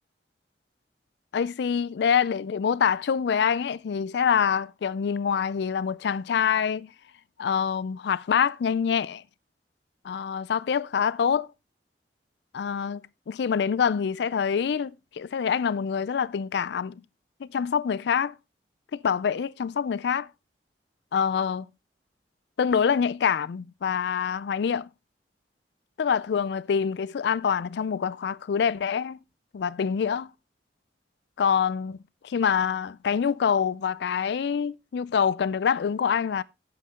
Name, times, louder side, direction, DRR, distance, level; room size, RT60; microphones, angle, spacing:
voice 1, 1.3-6.9 7.4-9.2 10.0-11.5 12.5-17.0 17.4-18.3 18.9-20.3 21.1-21.7 22.6-24.9 26.0-29.2 29.5-30.3 31.4-32.0 32.2-36.4, left 7 dB, 70° left, 0.4 m, -25 dB
8.3 x 7.9 x 3.6 m
head